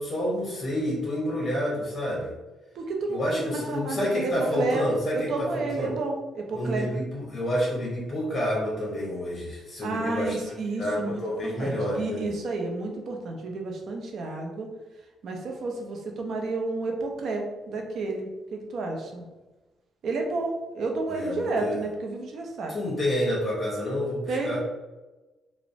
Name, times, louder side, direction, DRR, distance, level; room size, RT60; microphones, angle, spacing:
voice 1, 0.0-2.3 3.1-5.9 6.5-12.3 21.1-21.8 22.7-24.6, equal, 20° left, -5 dB, 1.0 m, -29 dB
voice 2, 2.8-4.9 5.1-6.9 9.8-14.7 15.2-19.3 20.0-22.7 24.3-24.6, right 3 dB, 65° right, 2 dB, 0.5 m, -31 dB
2.9 x 2.0 x 2.6 m, 1.1 s
cardioid pair, 90°, 0 cm